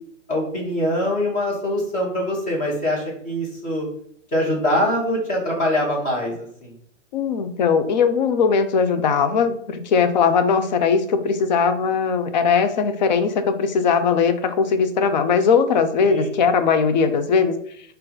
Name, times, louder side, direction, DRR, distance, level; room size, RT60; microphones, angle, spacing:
voice 1, 0.3-3.9 4.3-6.7 16.0-16.3, left 1 dB, 20° left, -3 dB, 1.4 m, -23 dB
voice 2, 7.1-17.5, left 5 dB, 35° left, 9 dB, 0.4 m, -19 dB
4.2 x 2.6 x 3.8 m, 0.65 s
figure-of-eight pair, 120°, 39 cm